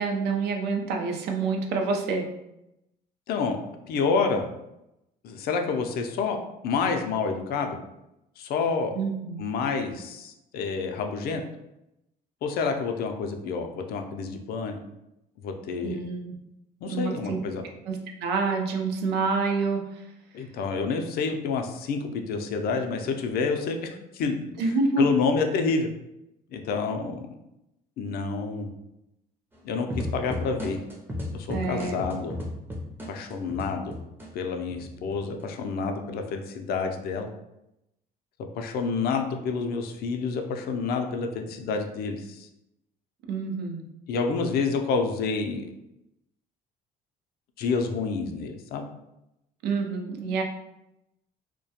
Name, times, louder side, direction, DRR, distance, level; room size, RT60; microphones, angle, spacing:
voice 1, 0.0-2.3 8.9-9.4 15.8-16.3 16.9-17.4 17.9-19.8 24.6-25.1 31.5-32.0 43.3-43.8 49.6-50.4, right 4 dB, 80° right, 3 dB, 0.5 m, -27 dB
voice 2, 3.9-4.5 5.2-6.4 6.6-7.8 8.4-8.9 9.4-11.4 12.4-14.8 15.4-16.0 16.8-17.6 20.3-25.9 26.5-27.3 28.0-28.7 29.6-30.8 31.3-32.4 33.1-33.9 34.3-37.3 38.6-42.5 44.1-45.7 47.6-48.9, left 4 dB, 65° left, 4 dB, 0.4 m, -28 dB
sound 1, 29.9-34.3 34.7-35.4, left 1 dB, 10° right, 0.5 m, -34 dB
2.3 x 2.1 x 2.7 m, 0.87 s
cardioid pair, 110°, 17 cm